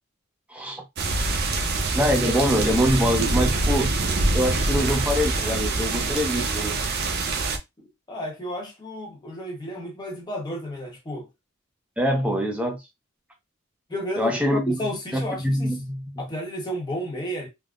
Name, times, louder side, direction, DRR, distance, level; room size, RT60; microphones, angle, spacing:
voice 1, 0.5-0.8 1.9-3.9 4.3-6.8 12.0-12.8 14.2-14.8 15.1-16.0, equal, 5° right, 0.6 m, -24 dB
sound 1, 1.0-7.6, right 3 dB, 50° right, 0.6 m, -25 dB
voice 2, 7.8-11.3 13.9-15.8 16.2-17.5, equal, 20° left, 0.9 m, -32 dB
3.5 x 2.1 x 2.4 m
head